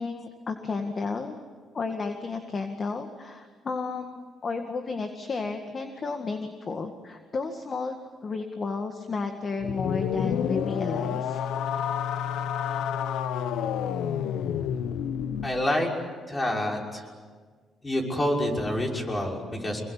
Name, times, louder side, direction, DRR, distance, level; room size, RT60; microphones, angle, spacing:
voice 1, 0.0-1.4 1.7-8.0 8.2-11.4, left 4 dB, 40° left, 5 dB, 1.9 m, -32 dB
sound 1, 9.6-15.5, left 8 dB, 85° left, 0.9 m, -29 dB
voice 2, 15.4-15.9 16.3-17.1 17.8-19.8, left 1 dB, 25° left, 0 dB, 6.1 m, -27 dB
26.5 x 22.5 x 8.5 m, 1.5 s
cardioid pair, 90°, 0 cm